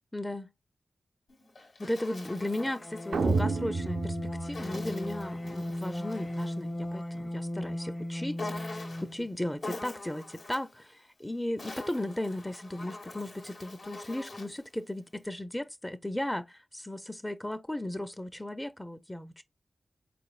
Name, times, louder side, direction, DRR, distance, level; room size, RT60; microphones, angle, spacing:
voice 1, 0.1-0.5 1.8-19.4, left 1 dB, 15° left, 0.5 m, -36 dB
Insect, 1.3-3.5 4.5-6.6 8.4-9.2 9.6-10.7 11.4-14.6, left 2 dB, 70° left, 1.6 m, -44 dB
sound 1, 2.5-9.3, left 1 dB, 40° left, 0.8 m, -37 dB
sound 2, 3.1-5.3, right 4 dB, 80° right, 0.5 m, -30 dB
4.1 x 3.2 x 2.4 m
cardioid pair, 55°, 0 cm